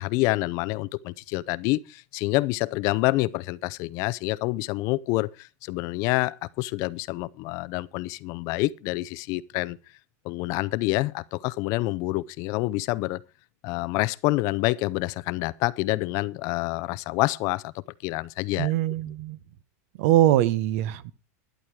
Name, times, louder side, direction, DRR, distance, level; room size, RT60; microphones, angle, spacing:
voice 1, 0.0-9.8 10.2-13.2 13.6-18.7, left 20 dB, 40° left, 0.5 m, -27 dB
voice 2, 18.6-19.4 20.0-21.1, right 14 dB, 55° right, 0.9 m, -22 dB
12.0 x 11.0 x 4.7 m
supercardioid pair, 160°, 9 cm